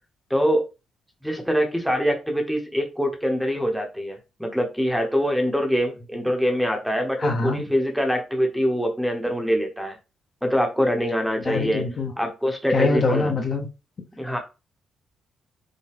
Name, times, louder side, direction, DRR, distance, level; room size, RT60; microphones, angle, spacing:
voice 1, 0.3-0.7 1.2-10.0 10.4-11.9 12.2-13.3 14.2-14.4, equal, ahead, 0.8 m, -24 dB
voice 2, 7.2-7.6 11.5-12.1 12.7-13.7, left 3 dB, 40° left, 0.7 m, -23 dB
5.5 x 2.1 x 3.4 m
cardioid pair, 140°, 0 cm